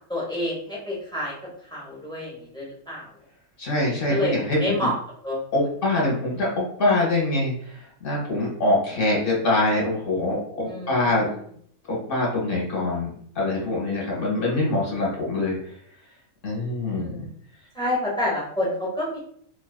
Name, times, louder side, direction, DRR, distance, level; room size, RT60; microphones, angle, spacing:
voice 1, 0.1-1.3 1.7-3.1 3.9-4.9 5.2-5.7 10.7-11.4 16.9-17.3 17.7-19.2, left 1 dB, 5° left, -6 dB, 0.4 m, -28 dB
voice 2, 3.6-4.9 5.5-7.5 8.0-11.3 11.9-15.6 16.4-17.3, left 2 dB, 50° left, -3 dB, 0.8 m, -24 dB
2.4 x 2.4 x 2.2 m, 0.63 s
omnidirectional pair, 1.5 m